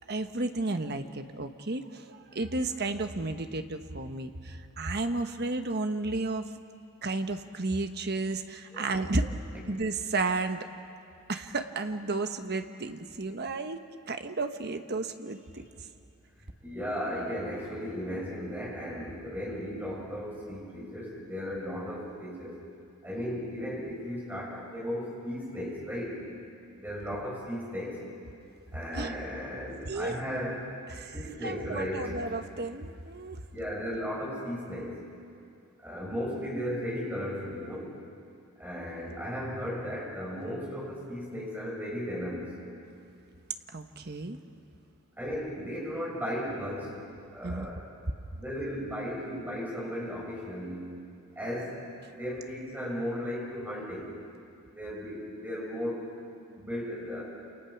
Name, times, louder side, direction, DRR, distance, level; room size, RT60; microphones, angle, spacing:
voice 1, 0.1-6.5 7.0-9.3 9.7-10.6 11.3-13.8 14.1-15.6 28.9-29.1 29.8-30.1 30.9-31.1 31.4-33.4 43.7-44.4 47.4-47.7, right 2 dB, 50° right, 7 dB, 1.2 m, -32 dB
voice 2, 16.6-22.6 23.0-26.2 26.8-28.0 28.7-30.7 31.1-32.1 33.5-35.0 35.8-37.9 38.6-42.6 45.2-47.0 47.3-47.9 48.3-51.0 51.4-51.8 52.1-54.2 54.7-56.0 56.6-57.2, equal, 10° right, -4 dB, 7.1 m, -35 dB
28.5 x 28.5 x 6.0 m, 2.4 s
head